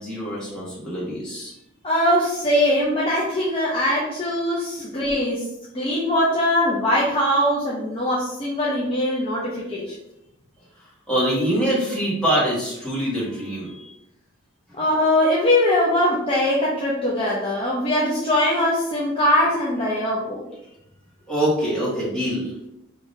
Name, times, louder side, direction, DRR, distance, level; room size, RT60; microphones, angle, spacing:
voice 1, 0.0-1.5 4.8-4.9 11.1-13.9 21.3-22.5, equal, 5° left, -8 dB, 1.4 m, -24 dB
voice 2, 1.8-5.4 5.7-9.9 14.8-20.4, left 1 dB, 25° left, -6 dB, 0.6 m, -21 dB
4.9 x 2.8 x 2.6 m, 0.85 s
head